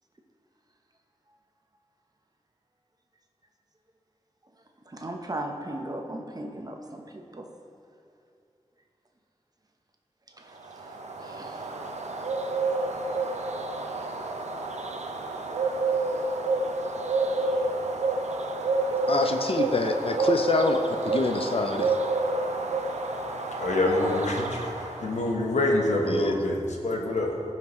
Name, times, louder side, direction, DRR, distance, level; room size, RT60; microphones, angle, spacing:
voice 1, 4.8-7.5 10.4-11.7 11.9-12.2 14.7-15.4 16.9-17.0, right 1 dB, 35° right, 2 dB, 0.9 m, -39 dB
Bird, 10.6-25.3, right 3 dB, 75° right, 0.7 m, -29 dB
voice 2, 19.1-22.0 26.1-26.3, left 3 dB, 55° left, 5 dB, 0.5 m, -26 dB
voice 3, 23.6-27.4, left 1 dB, 85° left, 0 dB, 1.1 m, -26 dB
15.5 x 5.8 x 3.1 m, 2.5 s
wide cardioid pair, 65°, 12 cm